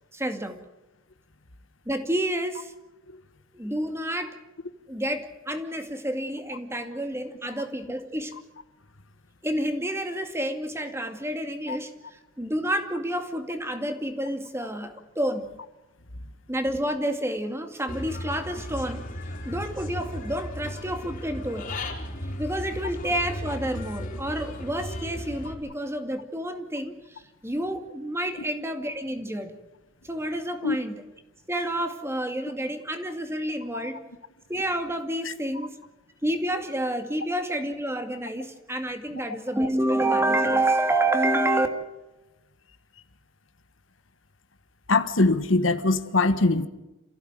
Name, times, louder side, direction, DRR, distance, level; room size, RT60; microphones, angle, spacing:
voice 1, 0.1-0.6 1.9-2.7 3.5-4.4 4.9-8.3 9.4-15.5 16.5-19.1 19.4-21.7 22.4-29.5 30.0-30.9 31.5-34.0 34.5-35.8 36.2-41.7, right 1 dB, 15° right, 6 dB, 2.3 m, -29 dB
Human voice / Bird, 17.9-25.5, left 1 dB, 45° left, 4.2 m, -35 dB
voice 2, 44.9-46.7, left 3 dB, 75° left, 10 dB, 1.5 m, -22 dB
27.5 x 16.0 x 9.0 m, 1.0 s
head